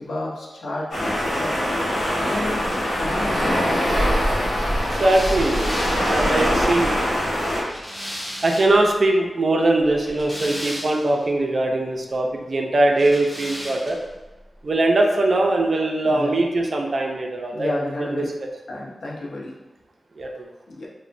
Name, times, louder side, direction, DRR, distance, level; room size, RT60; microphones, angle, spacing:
voice 1, 0.0-1.5 2.2-3.7 4.0-4.2 16.0-16.4 17.5-18.3 18.7-19.5 20.7-20.9, left 1 dB, 85° left, -4 dB, 0.6 m, -31 dB
sound 1, 0.9-7.6, equal, 60° left, 0.9 m, -22 dB
sound 2, 4.8-8.9 9.8-11.3 12.9-14.2, equal, 10° left, 0.5 m, -35 dB
voice 2, 5.0-6.9 8.4-14.0 14.6-17.7 18.0-18.1 20.2-20.5, right 2 dB, 50° right, 2 dB, 0.3 m, -21 dB
3.0 x 2.1 x 2.5 m, 1.0 s
wide cardioid pair, 145°, 0 cm